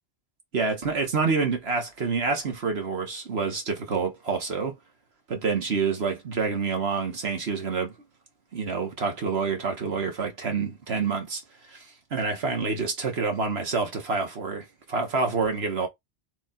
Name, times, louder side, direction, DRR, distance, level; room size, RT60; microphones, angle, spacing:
voice 1, 0.5-4.8 5.3-7.9 8.5-11.4 11.7-15.9, right 4 dB, 65° right, 1.4 m, -27 dB
4.8 x 3.0 x 3.7 m
omnidirectional pair, 1.2 m